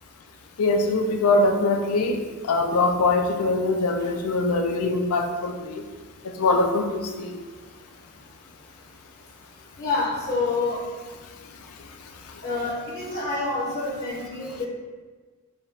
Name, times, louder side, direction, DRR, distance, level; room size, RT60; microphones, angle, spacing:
voice 1, 0.6-2.2 2.5-5.7 6.4-7.3, left 2 dB, 90° left, 4 dB, 0.4 m, -22 dB
voice 2, 9.8-10.8 12.4-14.7, left 3 dB, 45° left, -7 dB, 0.8 m, -27 dB
3.4 x 2.4 x 4.1 m, 1.4 s
head